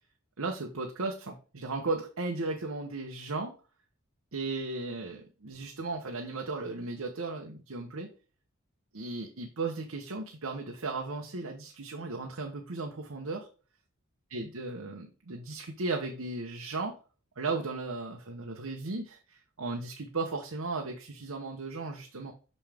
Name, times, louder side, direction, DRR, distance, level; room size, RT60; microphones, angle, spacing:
voice 1, 0.4-3.5 4.3-8.1 8.9-13.5 14.3-16.9 17.4-22.3, right 3 dB, 75° right, 2 dB, 0.9 m, -36 dB
6.1 x 5.5 x 3.5 m, 0.36 s
head